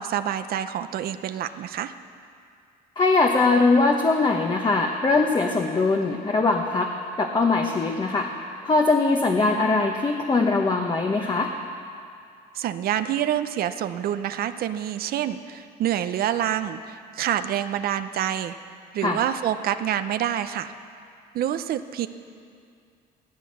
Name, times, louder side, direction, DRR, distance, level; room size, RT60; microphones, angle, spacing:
voice 1, 0.0-1.9 12.5-18.6 18.9-20.7 21.3-22.1, right 10 dB, 65° right, 10 dB, 0.7 m, -27 dB
voice 2, 3.0-6.9 7.2-8.3 8.6-11.5 19.0-19.2, left 3 dB, 25° left, 2 dB, 1.1 m, -21 dB
15.0 x 13.0 x 6.7 m, 2.3 s
cardioid pair, 110°, 17 cm